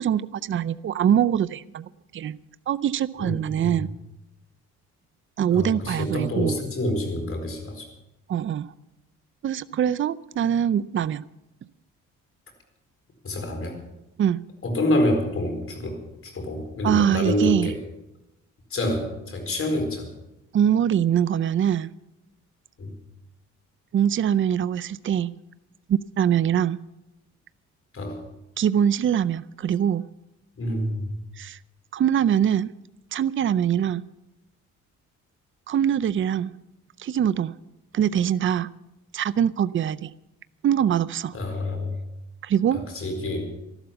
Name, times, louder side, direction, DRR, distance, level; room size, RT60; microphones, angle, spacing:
voice 1, 0.0-2.4 2.7-3.9 5.4-6.6 8.3-8.7 9.4-11.2 14.2-14.4 16.8-17.7 20.5-21.9 23.9-25.3 25.9-26.8 28.6-30.1 31.4-31.6 31.9-32.7 33.1-34.0 35.7-36.5 37.0-37.6 37.9-38.7 39.1-40.1 40.6-41.4 42.4-42.8, right 9 dB, 40° right, 16 dB, 0.5 m, -23 dB
voice 2, 3.2-3.8 5.5-7.8 13.2-13.8 14.6-17.8 18.7-20.1 22.8-22.9 27.9-28.2 30.6-31.1 41.3-42.0 42.7-43.5, left 1 dB, 45° left, 3 dB, 4.6 m, -27 dB
13.5 x 12.0 x 7.0 m, 0.92 s
cardioid pair, 90°, 30 cm